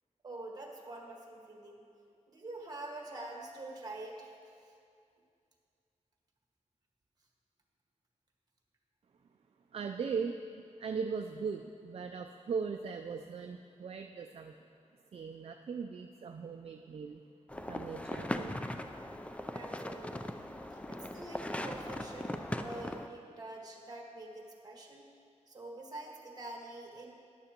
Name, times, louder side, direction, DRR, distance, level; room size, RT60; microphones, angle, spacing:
voice 1, 0.2-1.9 2.3-4.3 19.5-20.4 20.7-25.1 25.5-27.1, right 2 dB, 30° right, -1 dB, 1.6 m, -46 dB
voice 2, 9.7-14.6 15.1-17.2 17.7-18.6, right 5 dB, 50° right, 5 dB, 0.4 m, -39 dB
sound 1, 17.5-23.1, left 1 dB, 10° left, 0.4 m, -39 dB
13.5 x 10.5 x 2.9 m, 2.4 s
wide cardioid pair, 120°, 12 cm